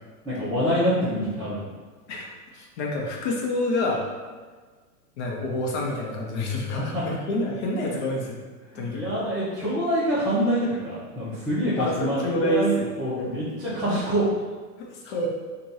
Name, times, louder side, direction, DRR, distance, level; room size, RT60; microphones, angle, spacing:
voice 1, 0.2-1.6 6.8-7.0 8.7-14.2, equal, ahead, -15 dB, 0.8 m, -26 dB
voice 2, 2.1-4.1 5.2-8.4 8.7-9.0 11.8-12.9 13.2-13.4 13.9-14.0 14.8-15.3, left 1 dB, 45° left, -1 dB, 1.0 m, -28 dB
3.2 x 2.6 x 4.0 m, 1.4 s
hypercardioid pair, 125°, 48 cm